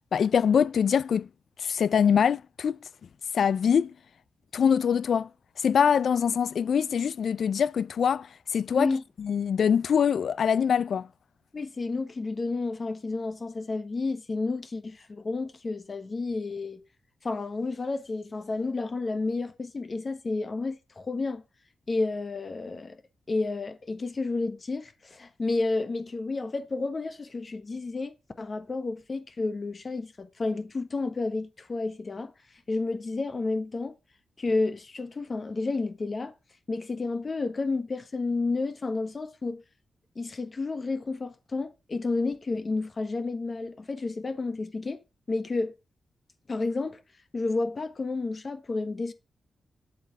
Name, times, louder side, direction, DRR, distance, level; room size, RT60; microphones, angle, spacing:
voice 1, 0.1-1.3 1.6-2.8 3.3-3.9 4.5-5.3 5.6-8.3 8.5-8.9 9.2-11.1, left 7 dB, 65° left, 0.4 m, -23 dB
voice 2, 8.7-9.0 11.5-16.8 17.2-21.4 21.9-23.0 23.3-32.3 32.7-33.9 34.4-36.3 36.7-39.6 40.1-45.0 45.3-45.7 46.5-47.0 47.3-49.1, left 3 dB, 35° left, 1.2 m, -31 dB
8.3 x 8.3 x 3.6 m
wide cardioid pair, 150°, 0 cm